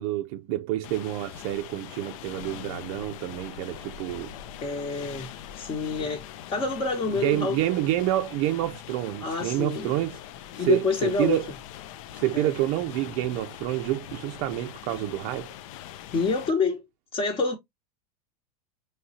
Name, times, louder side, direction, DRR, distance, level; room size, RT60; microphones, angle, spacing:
voice 1, 0.0-4.3 7.2-10.2 10.6-11.5 12.1-15.5, right 14 dB, 55° right, 0.5 m, -28 dB
sound 1, 0.8-16.5, left 12 dB, 60° left, 0.5 m, -43 dB
sound 2, 2.3-7.8, left 6 dB, 85° left, 0.7 m, -47 dB
voice 2, 4.6-5.3 5.5-7.6 9.2-9.9 10.6-11.4 12.3-12.5 16.1-16.8 17.1-17.6, left 4 dB, 30° left, 1.0 m, -27 dB
4.7 x 3.2 x 2.8 m
hypercardioid pair, 105°, 19 cm